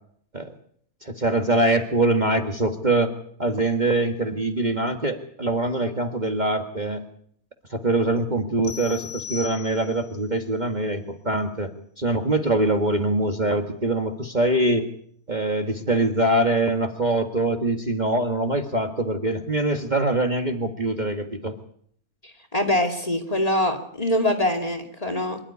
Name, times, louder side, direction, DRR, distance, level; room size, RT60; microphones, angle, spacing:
voice 1, 1.0-3.1 3.4-7.0 7.7-14.9 15.3-21.6, right 2 dB, 30° right, 5 dB, 1.8 m, -23 dB
sound 1, 8.6-10.2, left 7 dB, 45° left, 3.1 m, -37 dB
voice 2, 22.5-25.4, left 1 dB, 25° left, 4 dB, 2.6 m, -23 dB
25.0 x 12.5 x 9.7 m, 0.64 s
omnidirectional pair, 1.6 m